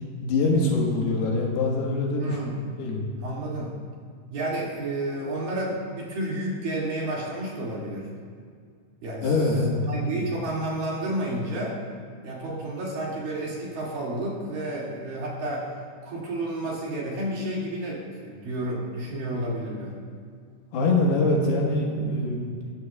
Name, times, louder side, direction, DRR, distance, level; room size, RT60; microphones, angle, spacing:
voice 1, 0.2-2.4 2.8-3.1 9.2-10.2 20.7-22.5, left 2 dB, 75° left, -1 dB, 3.4 m, -24 dB
voice 2, 2.2-2.6 3.2-3.7 4.3-8.1 9.0-9.5 9.8-11.8 12.2-15.7 16.0-19.9, right 1 dB, 60° right, -5 dB, 3.9 m, -31 dB
17.5 x 15.0 x 2.4 m, 2.1 s
omnidirectional pair, 4.6 m